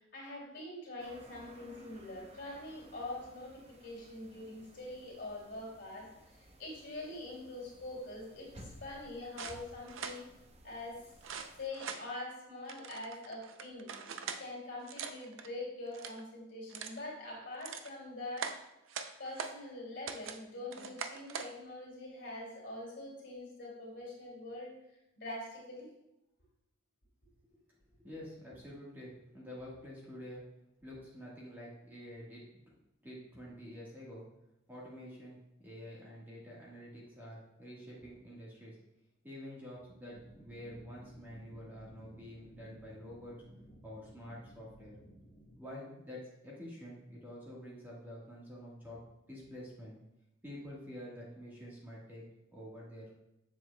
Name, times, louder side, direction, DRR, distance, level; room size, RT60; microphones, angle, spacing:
voice 1, 0.0-10.3 10.6-11.0 11.6-13.9 14.4-18.5 19.2-24.7 25.2-25.9, left 2 dB, 55° left, -4 dB, 2.5 m, -44 dB
sound 1, 1.0-11.7, right 1 dB, 30° right, 0.6 m, -57 dB
sound 2, 9.4-10.2 11.2-12.0 12.7-14.4 14.8-15.5 15.9-16.2 16.7-17.0 17.4-17.9 18.4-19.6 20.1-20.4 20.7-21.5, right 6 dB, 75° right, 0.5 m, -42 dB
voice 2, 28.0-30.4 30.8-32.4 33.0-34.2 34.7-35.4 35.6-38.8 39.2-43.3 43.8-44.9 45.6-49.0 49.3-50.0 50.4-52.2 52.5-53.1, equal, 10° right, -6 dB, 1.4 m, -48 dB
sound 3, 40.1-45.5, equal, 25° left, 1.6 m, -57 dB
7.3 x 7.2 x 2.2 m, 0.89 s
head